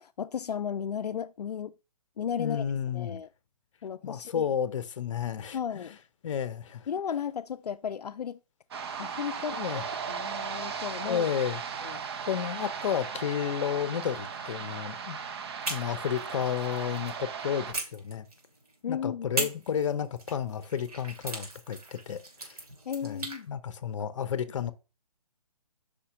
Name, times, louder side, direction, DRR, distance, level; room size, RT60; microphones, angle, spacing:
voice 1, 0.0-1.7 2.2-2.6 2.9-3.3 3.8-4.5 5.5-6.0 6.9-8.4 9.0-9.8 10.1-11.3 11.8-12.0 18.8-19.5 22.9-23.5, left 8 dB, 80° left, 0.4 m, -34 dB
voice 2, 2.3-3.2 4.0-5.9 6.2-6.9 9.5-9.8 11.0-11.6 12.2-15.2 15.7-18.3 18.9-22.6 23.0-23.2 23.5-24.7, left 8 dB, 50° left, 0.7 m, -32 dB
sound 1, 8.7-17.7, right 6 dB, 40° right, 0.7 m, -37 dB
sound 2, 15.6-17.2 17.7-18.7 19.3-23.4, right 3 dB, 70° right, 3.1 m, -38 dB
5.1 x 4.2 x 5.0 m
hypercardioid pair, 145°, 20 cm